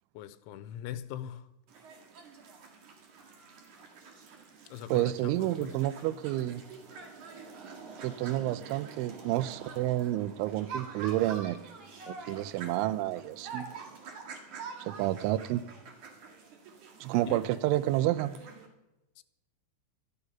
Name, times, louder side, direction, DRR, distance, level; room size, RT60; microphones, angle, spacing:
voice 1, 0.1-1.5 4.7-5.8 17.3-17.4 19.2-19.3, left 11 dB, 85° left, 3.2 m, -41 dB
sound 1, 1.7-18.7, right 5 dB, 50° right, 2.7 m, -46 dB
voice 2, 4.9-6.6 8.0-11.7 12.1-13.7 14.8-15.6 17.0-18.4, right 15 dB, 85° right, 3.0 m, -30 dB
13.0 x 12.5 x 5.6 m
omnidirectional pair, 5.4 m